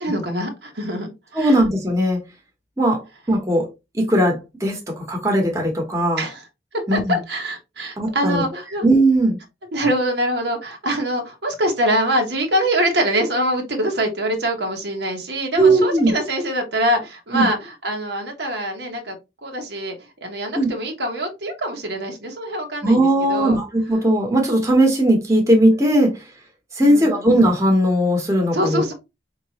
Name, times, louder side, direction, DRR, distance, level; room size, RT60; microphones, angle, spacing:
voice 1, 0.0-1.6 6.2-6.4 6.7-8.8 9.7-19.1 19.4-23.6 26.8-27.2 28.5-28.9, right 1 dB, 70° right, 1.2 m, -24 dB
voice 2, 1.3-2.2 2.8-3.0 3.3-3.7 3.9-6.2 6.9-7.2 8.0-8.4 8.8-9.4 15.5-16.1 17.3-17.5 20.5-20.7 22.8-26.2 26.7-28.8, right 1 dB, 15° right, 1.2 m, -18 dB
5.1 x 3.0 x 2.9 m
head